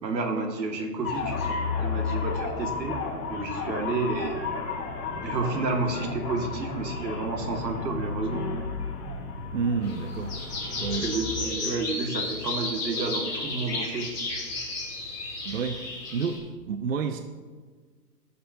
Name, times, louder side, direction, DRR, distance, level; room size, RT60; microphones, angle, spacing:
voice 1, 0.0-3.0 3.3-4.4 5.2-8.5 11.0-14.1, right 3 dB, 85° right, 3 dB, 1.9 m, -30 dB
sound 1, 1.0-11.5, left 4 dB, 60° left, 2.5 m, -33 dB
voice 2, 9.5-10.3 10.8-11.1 15.5-15.8 16.1-16.4 16.7-17.2, right 5 dB, 55° right, 8 dB, 0.5 m, -29 dB
sound 2, 9.8-16.4, left 2 dB, 10° left, 2.1 m, -33 dB
15.5 x 6.8 x 2.7 m, 1.5 s
hypercardioid pair, 175°, 50 cm